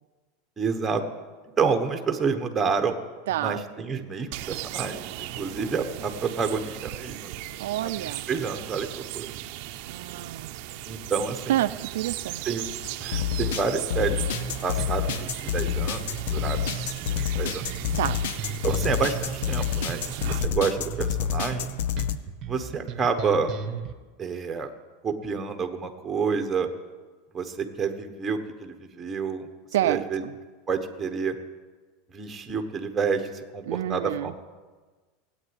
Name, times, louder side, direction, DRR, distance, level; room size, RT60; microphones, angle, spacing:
voice 1, 0.6-1.0 1.6-2.9 3.4-7.3 7.8-7.9 8.3-9.3 10.9-11.6 12.5-12.7 13.0-14.2 14.6-17.7 18.6-21.7 22.5-23.5 24.2-24.7 25.0-26.7 27.3-29.5 29.8-30.2 30.7-31.3 32.1-34.4, right 5 dB, 10° right, 6 dB, 1.2 m, -29 dB
voice 2, 3.3-3.6 7.6-8.3 9.9-10.5 11.5-12.4 18.0-18.2 20.5-20.6 29.7-30.3 33.6-34.3, right 13 dB, 85° right, 10 dB, 0.5 m, -28 dB
sound 1, 4.3-20.5, right 15 dB, 50° right, 0.7 m, -37 dB
sound 2, 12.8-22.2, left 10 dB, 75° left, 0.8 m, -29 dB
sound 3, 14.3-23.9, right 7 dB, 30° right, 1.0 m, -36 dB
17.0 x 8.8 x 9.7 m, 1.3 s
supercardioid pair, 170°, 0 cm